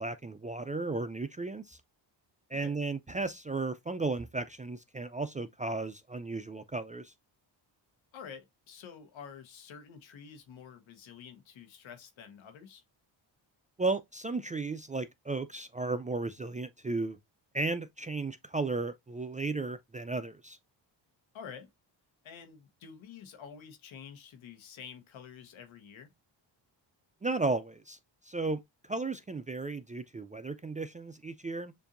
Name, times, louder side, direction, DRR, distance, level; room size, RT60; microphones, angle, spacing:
voice 1, 0.0-1.8 2.5-7.1 13.8-17.2 17.5-20.6 27.2-28.0 28.2-31.7, right 3 dB, 20° right, 0.3 m, -34 dB
voice 2, 8.1-12.8 21.3-21.7 22.2-26.1, left 7 dB, 85° left, 1.2 m, -49 dB
6.9 x 2.6 x 2.5 m
cardioid pair, 85°, 46 cm